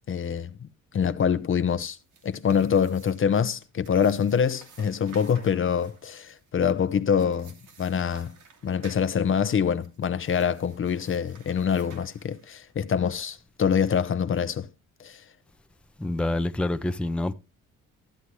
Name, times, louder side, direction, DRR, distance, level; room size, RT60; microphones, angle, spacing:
voice 1, 0.1-0.7 0.9-2.0 2.2-8.4 8.6-14.7 15.0-15.2, left 7 dB, 45° left, 0.7 m, -25 dB
sound 1, 1.8-12.7, right 5 dB, 85° right, 2.6 m, -54 dB
voice 2, 16.0-17.3, left 1 dB, 5° left, 0.6 m, -27 dB
13.0 x 8.1 x 3.1 m
cardioid pair, 90°, 30 cm